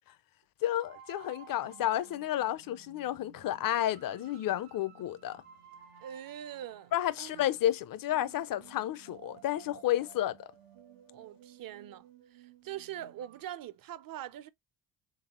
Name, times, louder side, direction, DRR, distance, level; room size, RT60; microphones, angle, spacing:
voice 1, 0.6-5.4 6.9-10.5, left 12 dB, 45° left, 0.5 m, -31 dB
sound 1, 0.7-13.4, right 10 dB, 90° right, 1.1 m, -56 dB
voice 2, 6.0-6.9 7.2-7.5 11.1-12.0 12.3-14.5, right 11 dB, 45° right, 0.5 m, -43 dB
4.0 x 3.5 x 2.9 m
cardioid pair, 105°, 47 cm